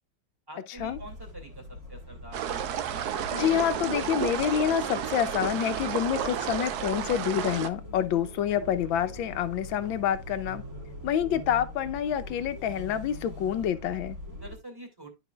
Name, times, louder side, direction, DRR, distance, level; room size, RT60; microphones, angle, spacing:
voice 1, 0.5-2.6 14.4-15.1, right 1 dB, 10° right, 2.3 m, -46 dB
sound 1, 0.8-14.6, equal, 45° right, 2.8 m, -43 dB
sound 2, 2.3-7.7, right 9 dB, 65° right, 1.0 m, -32 dB
voice 2, 3.3-10.6 11.0-14.2, left 9 dB, 75° left, 1.5 m, -27 dB
sound 3, 3.3-5.2, left 4 dB, 40° left, 1.8 m, -46 dB
12.0 x 5.1 x 2.3 m
omnidirectional pair, 2.2 m